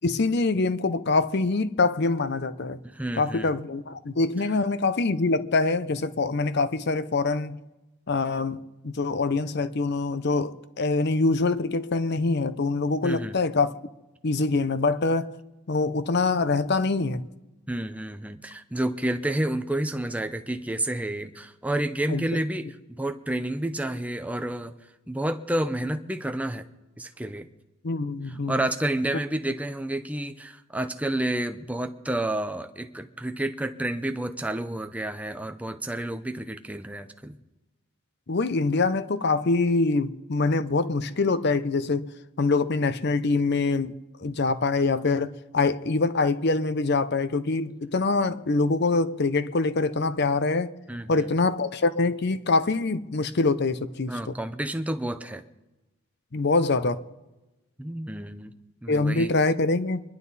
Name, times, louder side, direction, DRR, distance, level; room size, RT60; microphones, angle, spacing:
voice 1, 0.0-2.8 3.2-7.6 8.1-13.8 14.2-15.3 15.7-17.2 22.1-22.3 27.8-28.6 38.3-42.1 42.4-43.9 44.2-50.7 51.1-54.3 56.3-57.0 58.9-60.0, left 3 dB, 50° left, 0.6 m, -24 dB
voice 2, 2.8-3.5 13.0-13.3 17.7-24.8 25.1-26.6 27.0-27.5 28.3-37.4 50.9-51.3 54.1-55.4 57.8-58.5 58.8-59.3, right 1 dB, 5° right, 0.6 m, -30 dB
25.5 x 11.0 x 4.1 m
head